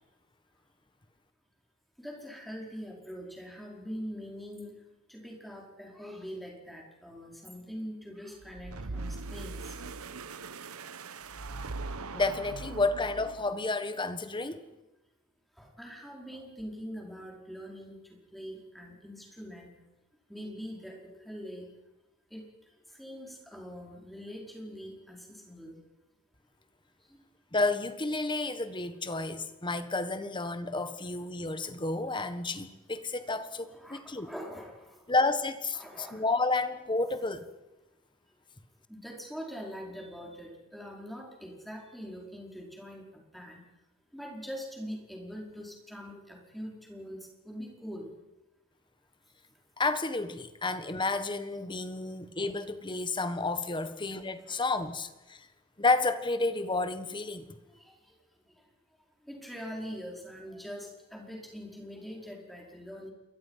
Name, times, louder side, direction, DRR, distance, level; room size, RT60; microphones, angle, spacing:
voice 1, 2.0-4.7 5.1-9.7 15.6-18.0 18.3-19.7 20.3-21.7 22.3-22.5 23.0-25.8 33.6-35.0 35.7-36.2 38.9-43.6 44.1-48.1 54.5-54.6 57.8-57.9 59.2-63.1, equal, ahead, -1 dB, 5.1 m, -43 dB
sound 1, 8.4-13.7, right 3 dB, 80° right, 1.1 m, -40 dB
voice 2, 12.1-14.6 27.5-34.3 35.1-37.5 49.8-55.4 55.8-57.6, left 3 dB, 20° left, 10 dB, 1.5 m, -31 dB
28.0 x 22.5 x 5.8 m, 1.0 s
head